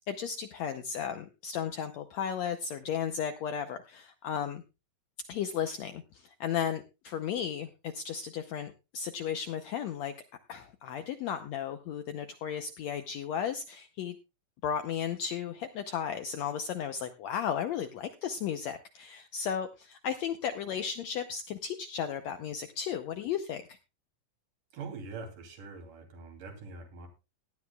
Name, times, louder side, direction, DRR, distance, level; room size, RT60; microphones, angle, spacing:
voice 1, 0.1-4.6 5.3-10.1 10.5-14.1 14.6-23.8, left 8 dB, 75° left, 8 dB, 1.6 m, -34 dB
voice 2, 24.7-27.1, right 4 dB, 70° right, 3 dB, 4.4 m, -43 dB
18.0 x 11.5 x 2.3 m, 0.28 s
omnidirectional pair, 3.9 m